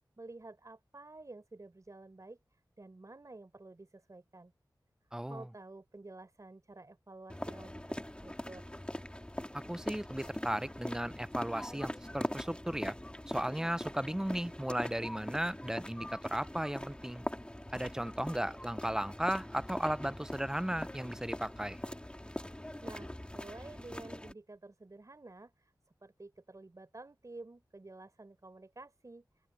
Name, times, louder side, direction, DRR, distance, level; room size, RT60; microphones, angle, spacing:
voice 1, 0.2-2.4 2.8-4.5 5.3-8.7 22.8-25.7 26.0-29.2, right 2 dB, 45° right, 4.8 m, -51 dB
voice 2, 5.1-5.5 9.7-13.0 13.3-17.3 17.7-21.8, right 1 dB, 10° right, 0.7 m, -35 dB
sound 1, 7.3-24.3, left 1 dB, 15° left, 3.6 m, -42 dB
open air
wide cardioid pair, 70°, 8 cm